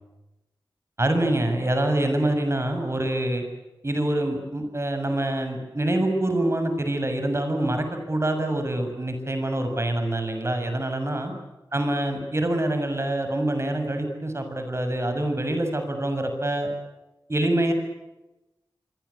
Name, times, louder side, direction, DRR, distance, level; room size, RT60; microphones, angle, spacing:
voice 1, 1.0-3.4 3.8-11.3 11.7-16.7 17.3-17.7, right 1 dB, 35° right, 6 dB, 7.1 m, -25 dB
26.5 x 24.5 x 8.6 m, 0.99 s
wide cardioid pair, 65°, 8 cm